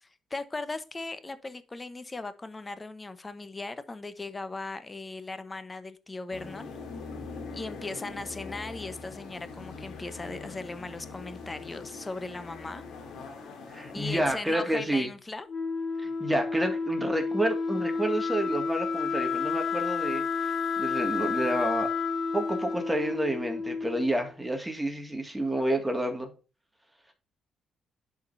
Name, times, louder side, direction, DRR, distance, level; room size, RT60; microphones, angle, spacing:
voice 1, 0.0-6.7 7.5-12.8 13.9-15.5, left 3 dB, 20° left, 0.9 m, -38 dB
sound 1, 6.3-14.3, left 4 dB, 80° left, 2.4 m, -42 dB
voice 2, 13.7-15.1 16.0-21.9 22.3-26.3, right 1 dB, 10° right, 2.0 m, -29 dB
Wind instrument woodwind instrument, 15.5-24.2, left 5 dB, 55° left, 1.4 m, -30 dB
11.0 x 5.2 x 2.6 m
cardioid pair, 90°, 0 cm